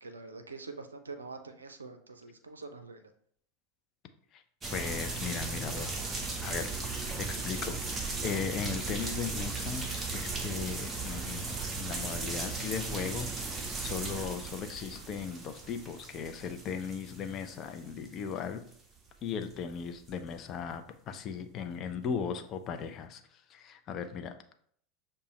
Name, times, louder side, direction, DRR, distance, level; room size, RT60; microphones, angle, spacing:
voice 1, 0.0-3.1, right 3 dB, 80° right, 7 dB, 0.5 m, -45 dB
sound 1, 4.6-18.4 18.7-18.8 19.4-19.8 20.1-20.2, right 4 dB, 20° right, 0.8 m, -37 dB
voice 2, 4.7-5.9 6.4-18.6 19.2-23.2 23.5-24.4, left 6 dB, 35° left, 7 dB, 0.4 m, -37 dB
6.7 x 2.2 x 3.0 m, 0.64 s
figure-of-eight pair, 80°, 0 cm